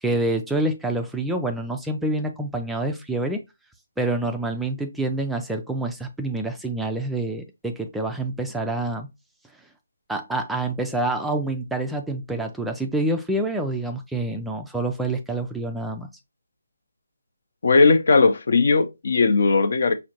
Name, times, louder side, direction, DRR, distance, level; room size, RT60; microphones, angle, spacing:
voice 1, 0.0-3.4 4.0-9.1 10.1-16.1, right 2 dB, 5° right, 0.3 m, -27 dB
voice 2, 17.6-19.9, left 4 dB, 55° left, 0.5 m, -18 dB
4.9 x 2.1 x 2.9 m
figure-of-eight pair, 155°, 0 cm